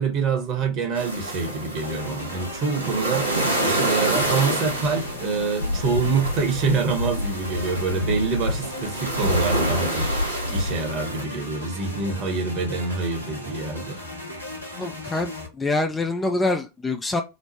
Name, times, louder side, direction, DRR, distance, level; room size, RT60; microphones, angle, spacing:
voice 1, 0.0-14.0, right 4 dB, 35° right, 1.0 m, -26 dB
sound 1, 1.0-11.2, equal, 85° right, 0.9 m, -27 dB
sound 2, 1.8-15.5, left 1 dB, 80° left, 0.9 m, -37 dB
voice 2, 14.8-17.2, left 2 dB, 10° left, 0.4 m, -25 dB
3.1 x 2.0 x 4.1 m
figure-of-eight pair, 90°, 0 cm